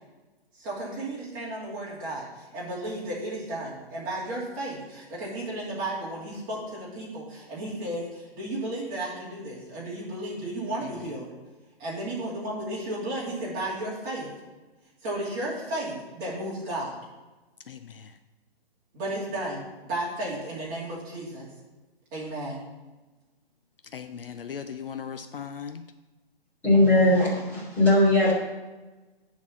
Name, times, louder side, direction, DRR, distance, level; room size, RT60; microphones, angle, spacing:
voice 1, 0.6-11.3 11.8-14.3 15.0-16.9 18.9-21.5 22.1-22.6, right 1 dB, 20° right, -6 dB, 2.5 m, -33 dB
voice 2, 17.7-18.1 23.9-25.8, left 7 dB, 60° left, 8 dB, 0.6 m, -38 dB
voice 3, 26.6-28.3, left 1 dB, 5° left, -10 dB, 2.8 m, -19 dB
9.6 x 4.1 x 7.2 m, 1.2 s
hypercardioid pair, 165°, 31 cm